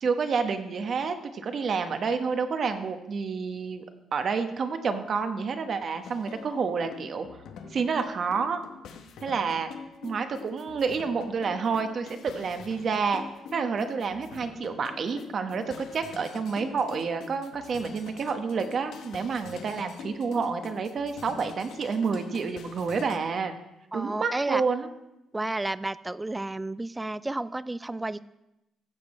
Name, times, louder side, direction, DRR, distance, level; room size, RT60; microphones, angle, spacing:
voice 1, 0.0-3.8 4.1-7.3 7.7-8.6 9.2-9.7 10.0-13.2 13.5-23.5 23.9-24.9, right 5 dB, 50° right, 7 dB, 1.1 m, -29 dB
sound 1, 6.0-23.2, left 5 dB, 85° left, 1.1 m, -45 dB
voice 2, 23.9-24.6 25.3-28.3, right 2 dB, 15° right, 17 dB, 0.4 m, -31 dB
15.0 x 6.9 x 4.3 m, 0.91 s
cardioid pair, 90°, 0 cm